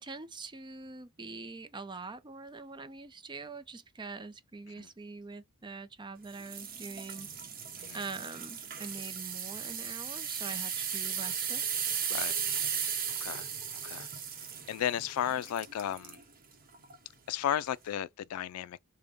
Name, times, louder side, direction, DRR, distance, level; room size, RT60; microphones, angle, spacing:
voice 1, 0.0-7.5 7.9-11.6, right 4 dB, 20° right, 0.5 m, -44 dB
sound 1, 6.3-16.2 16.7-17.0 17.5-17.6, right 7 dB, 40° right, 0.9 m, -36 dB
voice 2, 13.1-14.1 14.4-16.2 17.3-18.8, left 10 dB, 80° left, 0.3 m, -34 dB
5.1 x 2.1 x 3.4 m
head